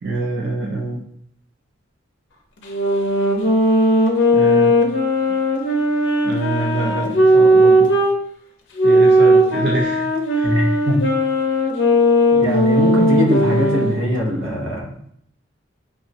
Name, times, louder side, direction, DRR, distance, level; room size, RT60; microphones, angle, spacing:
voice 1, 0.0-1.0 4.3-4.7 6.2-7.9 8.8-10.0 10.3-10.5, right 3 dB, 55° right, -2 dB, 0.4 m, -25 dB
sound 1, 2.6-8.1 8.8-14.0, equal, 70° left, 0.5 m, -16 dB
voice 2, 10.4-11.0 12.3-14.9, left 1 dB, 90° right, -1 dB, 0.7 m, -21 dB
3.5 x 2.0 x 2.6 m, 0.69 s
head